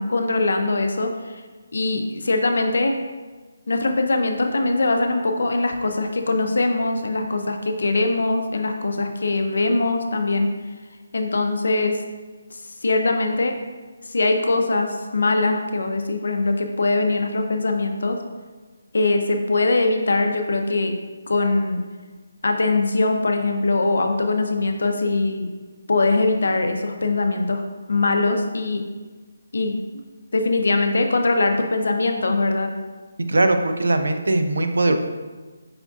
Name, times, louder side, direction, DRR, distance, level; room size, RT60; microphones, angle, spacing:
voice 1, 0.0-1.3 1.7-2.9 3.7-10.5 11.1-12.0 12.8-13.5 14.1-18.2 18.9-20.9 21.3-21.8 22.4-25.5 25.9-27.6 27.9-28.8 29.5-29.7 30.3-32.7, left 2 dB, 70° left, 5 dB, 0.5 m, -22 dB
voice 2, 33.3-34.9, right 2 dB, 85° right, 7 dB, 0.4 m, -20 dB
5.0 x 3.6 x 2.4 m, 1.3 s
hypercardioid pair, 170°, 0 cm